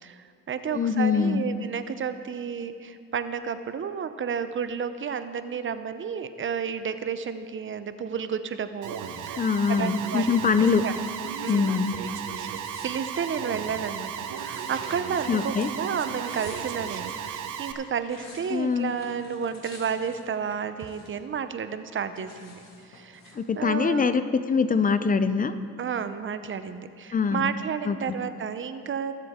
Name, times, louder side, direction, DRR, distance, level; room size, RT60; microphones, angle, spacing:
voice 1, 0.0-10.2 10.6-10.9 11.4-11.7 12.8-22.6 22.9-24.2 25.8-29.1, right 7 dB, 40° right, 11 dB, 0.7 m, -32 dB
voice 2, 0.7-1.4 9.4-10.8 11.5-11.9 15.3-15.7 18.5-18.9 23.4-24.2 24.5-25.5 27.1-27.5 27.9-28.0, left 5 dB, 30° left, 11 dB, 0.5 m, -23 dB
Alarm, 8.8-17.7, right 8 dB, 80° right, 0.8 m, -35 dB
sound 1, 12.6-13.7 14.4-15.7 16.1-17.2 17.8-21.4 21.7-23.4, left 3 dB, 65° left, 2.2 m, -49 dB
20.5 x 7.7 x 3.6 m, 2.2 s
cardioid pair, 90°, 30 cm